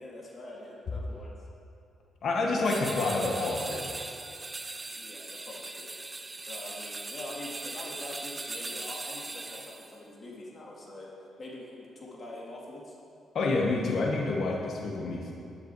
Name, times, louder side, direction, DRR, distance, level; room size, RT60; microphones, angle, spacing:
voice 1, 0.0-1.3 4.9-6.0 6.5-11.1 11.4-13.0, left 1 dB, 35° left, -3 dB, 2.0 m, -44 dB
voice 2, 2.2-3.9 13.3-15.3, left 3 dB, 60° left, 0 dB, 1.4 m, -28 dB
sound 1, 2.6-10.0, right 3 dB, 25° right, 0.6 m, -39 dB
11.0 x 10.5 x 4.7 m, 2.6 s
cardioid pair, 105°, 0 cm